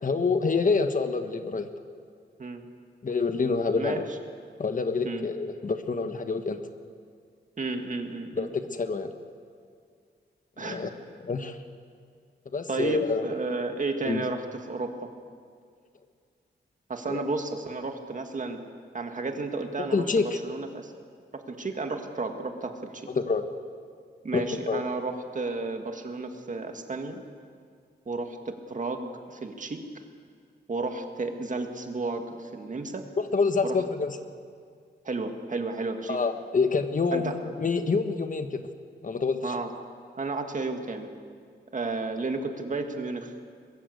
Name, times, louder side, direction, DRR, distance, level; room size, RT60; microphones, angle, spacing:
voice 1, 0.0-1.7 3.0-4.1 4.6-6.6 8.3-9.1 10.6-10.9 11.2-11.6 12.5-13.3 14.0-14.2 17.1-17.2 19.8-20.4 23.1-23.4 24.3-24.8 33.2-34.2 36.1-38.6 39.0-39.8, left 4 dB, 45° left, 7 dB, 1.4 m, -27 dB
voice 2, 7.6-8.5 10.6-10.9 12.7-15.1 16.9-18.6 18.9-20.9 21.3-23.1 24.2-27.2 28.1-29.8 30.7-33.1 33.6-33.8 35.0-36.2 37.1-37.4 39.4-39.7 40.2-41.1 41.7-43.3, right 3 dB, 40° right, 5 dB, 2.1 m, -32 dB
22.5 x 22.0 x 8.1 m, 2.1 s
wide cardioid pair, 140°, 19 cm